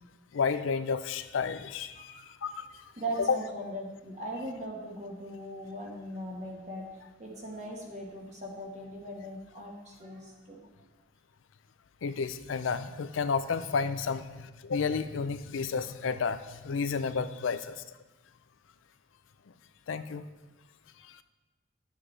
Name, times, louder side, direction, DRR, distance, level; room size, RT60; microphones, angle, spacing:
voice 1, 0.3-2.5 3.2-3.4 12.0-17.8 19.9-20.2 21.1-21.2, left 5 dB, 90° left, 11 dB, 0.4 m, -31 dB
voice 2, 3.0-6.9 7.2-10.6, right 1 dB, 40° right, -1 dB, 1.4 m, -39 dB
10.0 x 7.1 x 3.3 m, 1.1 s
head